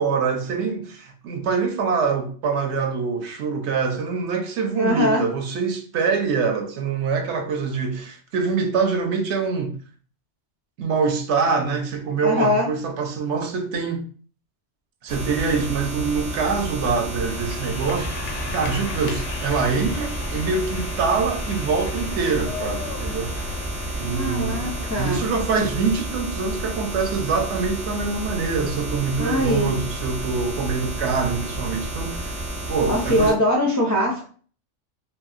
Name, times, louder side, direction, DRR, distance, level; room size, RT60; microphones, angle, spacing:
voice 1, 0.0-9.7 10.8-14.0 15.0-23.3 24.0-32.4 32.7-33.3, right 5 dB, 70° right, 0.9 m, -25 dB
voice 2, 4.7-5.2 12.2-12.7 24.2-25.2 29.2-29.8 32.9-34.3, left 1 dB, 30° left, 0.3 m, -22 dB
sound 1, 15.1-33.3, right 1 dB, 40° right, 0.7 m, -31 dB
sound 2, 17.2-25.2, left 4 dB, 90° left, 0.9 m, -35 dB
2.7 x 2.6 x 2.4 m
omnidirectional pair, 1.2 m